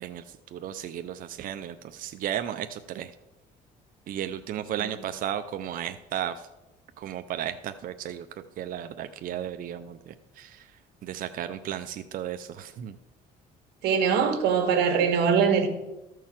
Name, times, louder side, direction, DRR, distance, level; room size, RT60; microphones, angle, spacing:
voice 1, 0.0-3.1 4.1-6.5 7.0-8.3 8.6-13.0, right 10 dB, 55° right, 0.6 m, -34 dB
voice 2, 13.8-15.7, right 6 dB, 85° right, 1.5 m, -22 dB
13.5 x 4.6 x 7.4 m
cardioid pair, 110°, 17 cm